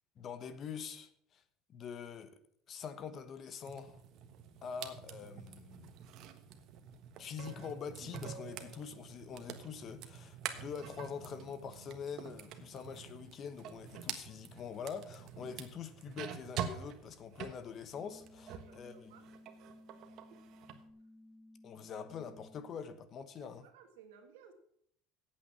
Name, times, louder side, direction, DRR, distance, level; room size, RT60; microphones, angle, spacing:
voice 1, 0.2-1.4 1.7-2.4 2.7-4.0 4.6-5.9 7.2-19.1 21.6-23.7, left 6 dB, 45° left, 1.2 m, -45 dB
sound 1, 3.6-18.8 19.1-20.8, right 8 dB, 55° right, 1.3 m, -47 dB
sound 2, 17.9-22.9, left 1 dB, 5° left, 0.8 m, -58 dB
voice 2, 18.5-19.3 23.4-24.5, right 7 dB, 85° right, 1.9 m, -58 dB
8.5 x 8.4 x 7.1 m
supercardioid pair, 105°, 0 cm